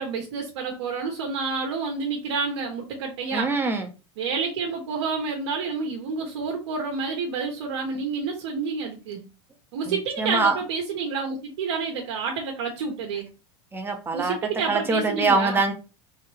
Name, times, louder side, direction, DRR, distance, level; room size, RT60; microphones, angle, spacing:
voice 1, 0.0-3.5 4.2-9.3 9.7-13.3 14.1-15.6, right 5 dB, 70° right, 1 dB, 1.3 m, -29 dB
voice 2, 3.3-3.9 9.8-10.6 13.7-15.7, right 3 dB, 15° right, 4 dB, 1.1 m, -24 dB
4.1 x 3.6 x 3.4 m, 0.31 s
supercardioid pair, 120°, 14 cm